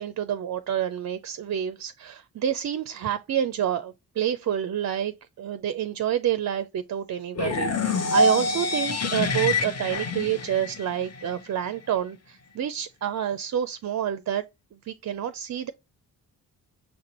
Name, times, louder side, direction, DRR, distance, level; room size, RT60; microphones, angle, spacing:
voice 1, 0.0-14.4 14.8-15.7, right 10 dB, 45° right, 0.5 m, -28 dB
sound 1, 7.4-11.3, left 2 dB, 40° left, 0.8 m, -26 dB
6.0 x 2.5 x 2.9 m
supercardioid pair, 50°, 40 cm